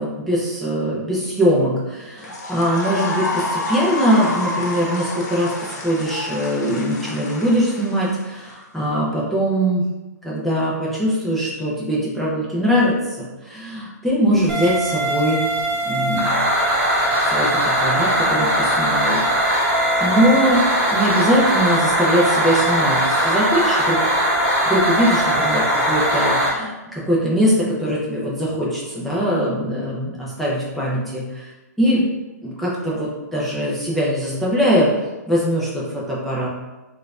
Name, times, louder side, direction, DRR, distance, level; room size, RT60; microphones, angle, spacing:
voice 1, 0.0-9.9 10.2-15.5 15.8-16.4 17.2-20.6 20.9-24.0 24.7-31.5 31.8-32.0 32.4-34.9 35.3-36.5, equal, ahead, -8 dB, 0.4 m, -21 dB
sound 1, 2.2-8.5, left 2 dB, 70° left, 0.9 m, -28 dB
sound 2, 14.5-26.5, right 1 dB, 15° right, 0.9 m, -20 dB
4.3 x 2.4 x 2.3 m, 1.1 s
hypercardioid pair, 160°, 9 cm